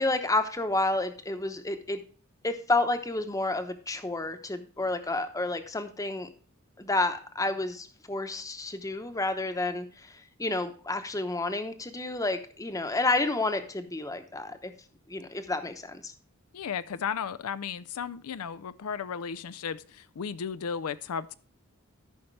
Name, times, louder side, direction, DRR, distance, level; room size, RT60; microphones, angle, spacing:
voice 1, 0.0-2.0 2.4-6.3 6.8-14.7 15.1-16.1, left 2 dB, 15° left, 8 dB, 0.9 m, -30 dB
voice 2, 16.5-21.3, left 7 dB, 90° left, 15 dB, 0.5 m, -34 dB
14.0 x 5.7 x 3.2 m, 0.42 s
head